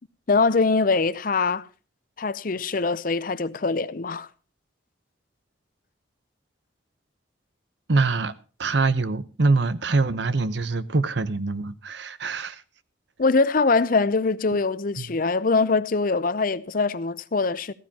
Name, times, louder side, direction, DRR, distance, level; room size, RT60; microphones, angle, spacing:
voice 1, 0.3-1.7 2.2-4.3 13.2-17.7, left 4 dB, 45° left, 0.6 m, -23 dB
voice 2, 7.9-8.3 8.6-12.6 15.0-15.1, right 3 dB, 65° right, 0.8 m, -24 dB
15.0 x 14.5 x 2.8 m
head